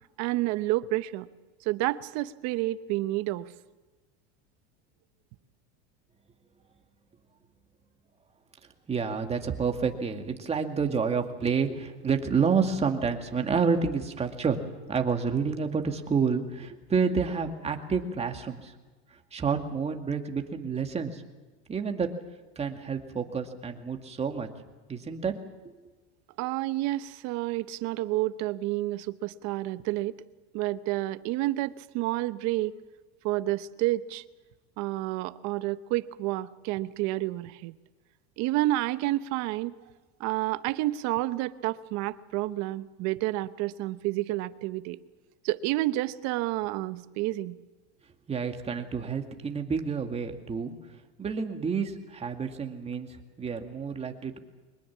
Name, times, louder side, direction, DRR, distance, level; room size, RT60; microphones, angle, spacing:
voice 1, 0.2-1.3 1.6-3.5 26.4-30.1 30.5-32.8 33.2-34.2 34.8-37.7 38.4-39.7 40.2-45.0 45.4-47.6, right 17 dB, 55° right, 14 dB, 1.0 m, -29 dB
voice 2, 8.9-14.6 14.9-18.7 19.3-21.2 21.7-22.1 22.6-24.5 24.9-25.3 48.3-50.8 51.2-53.1 53.4-54.4, right 5 dB, 20° right, 4 dB, 2.2 m, -29 dB
23.5 x 21.0 x 7.4 m, 1.3 s
supercardioid pair, 135°, 33 cm